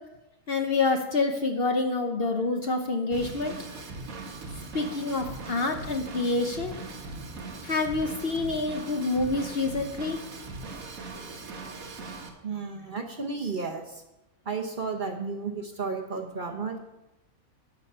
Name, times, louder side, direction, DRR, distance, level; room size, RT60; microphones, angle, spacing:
voice 1, 0.5-3.5 4.7-6.7 7.6-10.2, left 3 dB, 50° left, 5 dB, 0.9 m, -27 dB
Drum kit / Drum, 3.1-12.3, right 3 dB, 75° right, 1.5 m, -40 dB
voice 2, 12.4-14.0 14.4-16.8, right 4 dB, 40° right, 4 dB, 1.0 m, -33 dB
11.5 x 6.2 x 5.6 m, 0.95 s
omnidirectional pair, 1.5 m